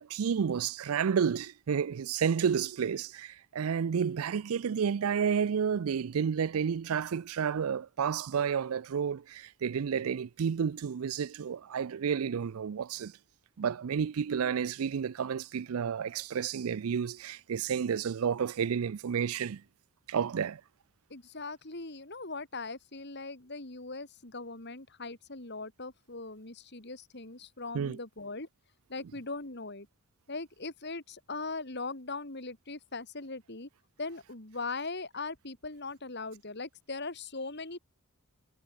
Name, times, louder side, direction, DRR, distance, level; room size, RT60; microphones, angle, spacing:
voice 1, 0.0-13.1 13.6-19.6 20.1-20.6 27.7-28.0, right 7 dB, 80° right, 0.4 m, -31 dB
voice 2, 21.1-28.5 28.9-29.9 30.3-33.7 34.0-37.8, left 3 dB, 50° left, 2.7 m, -40 dB
head